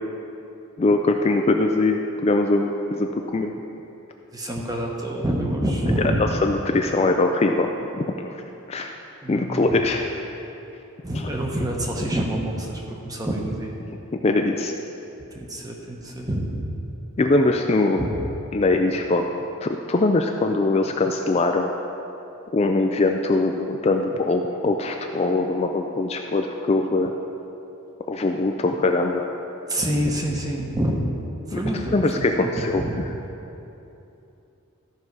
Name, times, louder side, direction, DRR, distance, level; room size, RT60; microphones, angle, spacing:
voice 1, 0.8-3.1 3.3-3.5 6.2-7.7 7.9-8.3 8.7-9.0 9.3-10.1 11.1-11.3 14.2-14.7 17.2-18.0 18.5-19.3 19.6-21.7 22.5-27.1 28.1-29.3 31.5-31.6 31.9-32.8, left 2 dB, 30° left, 3 dB, 0.3 m, -22 dB
voice 2, 4.3-6.2 9.2-9.7 11.0-13.7 15.3-16.7 18.0-18.1 29.7-31.1 31.5-32.9, right 1 dB, 15° right, 0 dB, 0.9 m, -27 dB
13.5 x 5.5 x 4.7 m, 2.9 s
head